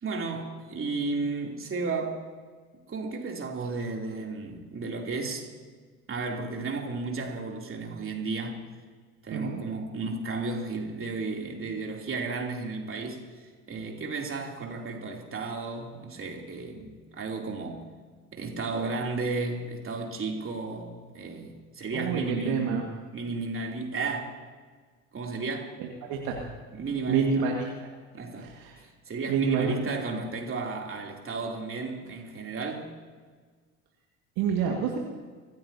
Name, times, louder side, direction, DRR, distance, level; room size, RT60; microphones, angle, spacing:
voice 1, 0.0-2.2 2.9-5.4 6.1-8.6 9.2-13.2 13.7-17.8 18.3-22.8 23.1-24.4 25.1-25.8 26.8-27.4 28.1-28.5 28.8-32.9, right 3 dB, 30° right, 1 dB, 3.1 m, -33 dB
voice 2, 9.3-9.6 21.9-22.9 25.8-26.4 27.1-27.7 28.4-28.8 29.3-29.7 34.4-35.0, right 6 dB, 55° right, 1 dB, 1.9 m, -28 dB
25.0 x 15.5 x 2.8 m, 1.5 s
figure-of-eight pair, 55°, 42 cm